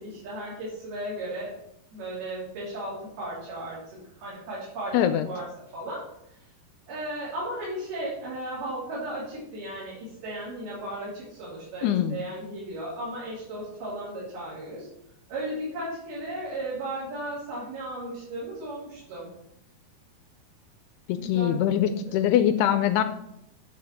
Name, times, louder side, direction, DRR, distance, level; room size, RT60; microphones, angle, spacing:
voice 1, 0.0-1.5 1.9-5.0 5.2-5.5 5.7-6.0 6.9-14.9 15.3-19.3 21.1-22.2, right 1 dB, 60° right, -8 dB, 5.2 m, -35 dB
voice 2, 4.9-5.3 11.8-12.2 21.1-23.0, left 10 dB, 85° left, 10 dB, 2.4 m, -23 dB
10.5 x 5.0 x 7.2 m, 0.82 s
omnidirectional pair, 5.1 m